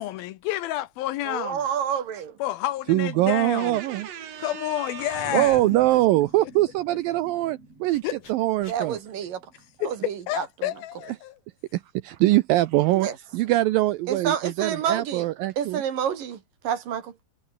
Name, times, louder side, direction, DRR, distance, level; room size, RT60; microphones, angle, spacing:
voice 1, 0.0-1.7 2.4-3.8 4.4-5.6 8.0-8.2 9.8-11.4, left 14 dB, 75° left, 2.5 m, -30 dB
voice 2, 1.3-2.4 3.6-5.3 8.6-9.4 9.8-10.5 12.9-13.2 14.1-15.2 15.6-16.4 16.6-17.1, right 8 dB, 60° right, 3.7 m, -29 dB
voice 3, 2.9-4.1 5.3-9.0 11.7-15.8, right 16 dB, 85° right, 2.1 m, -23 dB
sound 1, 4.6-5.9 7.7-9.1, left 3 dB, 55° left, 9.8 m, -49 dB
sound 2, 5.1-9.9, right 3 dB, 35° right, 9.1 m, -42 dB
omnidirectional pair, 4.7 m